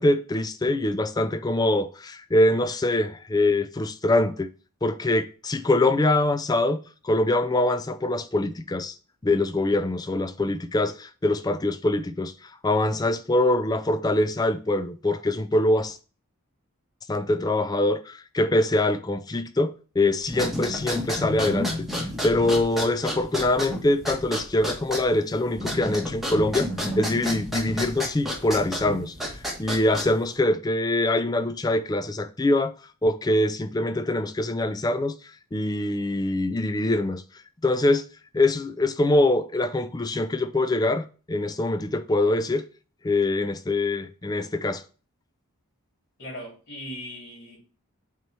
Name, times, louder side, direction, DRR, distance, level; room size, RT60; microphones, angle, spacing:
voice 1, 0.0-4.5 4.8-8.9 9.2-16.0 17.1-21.9 22.2-26.7 27.0-29.1 29.6-32.7 33.0-35.2 35.5-37.2 37.6-38.0 38.3-42.6 43.0-44.8, left 2 dB, 15° left, 0.4 m, -24 dB
sound 1, 20.3-30.3, equal, ahead, 1.2 m, -31 dB
voice 2, 46.2-47.6, equal, 50° left, 3.1 m, -38 dB
8.2 x 3.0 x 4.7 m
head